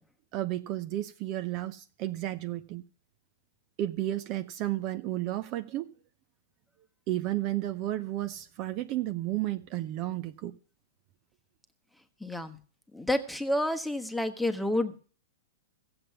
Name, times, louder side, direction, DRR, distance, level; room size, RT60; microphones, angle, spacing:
voice 1, 0.3-2.8 3.8-5.9 7.1-10.6, right 14 dB, 35° right, 0.7 m, -32 dB
voice 2, 12.2-12.6 12.9-15.0, left 1 dB, ahead, 1.3 m, -29 dB
15.5 x 7.9 x 6.9 m
hypercardioid pair, 150°, 0 cm